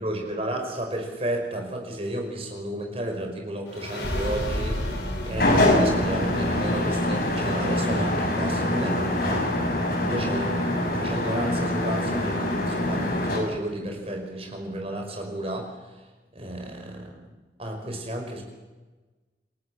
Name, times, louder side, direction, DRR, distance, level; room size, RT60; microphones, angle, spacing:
voice 1, 0.0-9.6 10.0-10.5 10.9-16.0 16.3-17.3 17.6-18.4, right 1 dB, 35° right, 3 dB, 5.4 m, -32 dB
sound 1, 3.7-14.9, equal, 85° left, 5.7 m, -36 dB
sound 2, 5.4-13.4, left 1 dB, 55° left, 6.4 m, -24 dB
28.5 x 17.5 x 7.3 m, 1.2 s
head